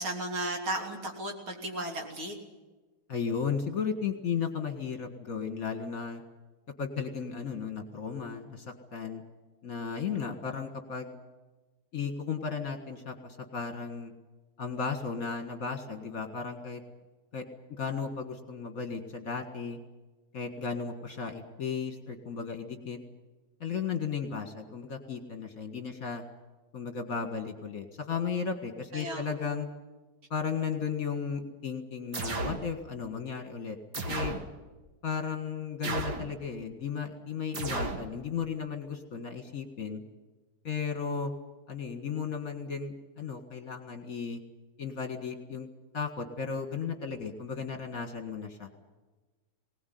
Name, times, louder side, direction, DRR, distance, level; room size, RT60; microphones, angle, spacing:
voice 1, 0.0-2.4 28.9-29.4, right 1 dB, 70° right, 2 dB, 3.9 m, -35 dB
voice 2, 3.1-6.2 6.8-9.2 9.6-11.1 11.9-14.1 14.6-16.8 17.3-19.8 20.3-23.0 23.6-26.2 26.7-29.7 30.3-34.4 35.0-40.0 40.6-41.3 41.7-44.4 44.8-45.7 45.9-48.7, left 6 dB, 40° left, 6 dB, 2.0 m, -35 dB
sound 1, 32.1-32.7 33.9-34.5 35.8-36.3 37.5-38.1, right 2 dB, 50° right, 2.2 m, -33 dB
20.5 x 19.0 x 9.4 m, 1.2 s
omnidirectional pair, 2.4 m